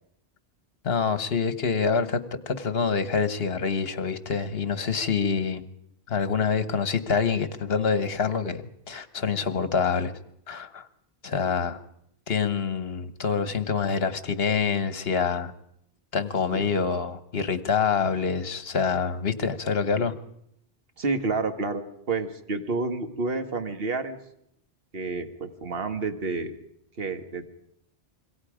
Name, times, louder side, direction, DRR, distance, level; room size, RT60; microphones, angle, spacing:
voice 1, 0.8-5.6 6.1-10.1 10.5-10.9 11.2-11.8 12.3-15.5 16.1-20.1, left 5 dB, 65° left, 12 dB, 1.5 m, -26 dB
voice 2, 21.0-24.2 24.9-26.5 27.0-27.5, right 3 dB, 60° right, 7 dB, 1.8 m, -29 dB
26.5 x 23.0 x 5.1 m, 0.72 s
omnidirectional pair, 1.1 m